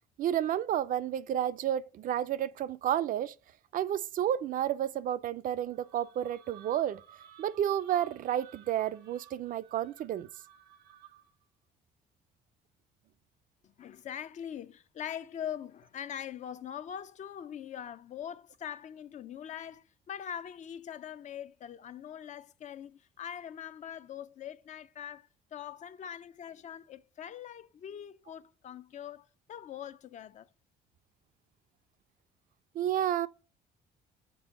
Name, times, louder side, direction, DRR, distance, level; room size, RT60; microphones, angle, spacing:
voice 1, 0.2-3.3 3.7-7.0 7.4-10.3 32.8-33.3, right 11 dB, 55° right, 0.4 m, -31 dB
sound 1, 5.7-11.4, right 9 dB, 90° right, 1.0 m, -56 dB
voice 2, 13.6-30.5, left 9 dB, 45° left, 0.5 m, -42 dB
6.1 x 4.3 x 4.8 m
cardioid pair, 110°, 17 cm